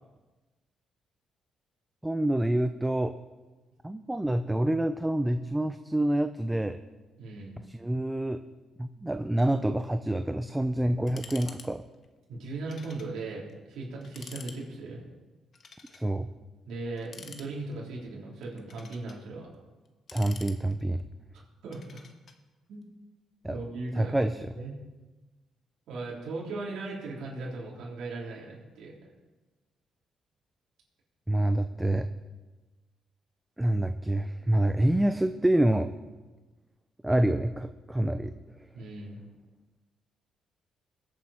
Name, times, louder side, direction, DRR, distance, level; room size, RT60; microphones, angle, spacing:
voice 1, 2.0-3.1 3.8-6.8 7.7-8.4 8.8-11.8 15.9-16.3 20.1-21.0 23.4-23.6 24.0-24.5 31.3-32.1 33.6-36.0 37.0-38.7, right 1 dB, 10° right, 9 dB, 0.6 m, -27 dB
voice 2, 7.2-7.5 12.3-15.0 16.7-19.5 21.6-22.0 22.7-22.9 23.5-24.2 24.6-24.7 25.9-29.0 38.7-39.2, right 3 dB, 80° right, -4 dB, 3.7 m, -38 dB
sound 1, 11.1-11.7 11.9-12.0 12.7-13.1 13.5-13.6 14.0-14.6 15.5-16.1 17.0-17.8 18.4-19.2 19.8-21.0 21.7-22.4, left 5 dB, 50° left, 1.4 m, -48 dB
21.5 x 8.4 x 4.4 m, 1.2 s
cardioid pair, 90°, 0 cm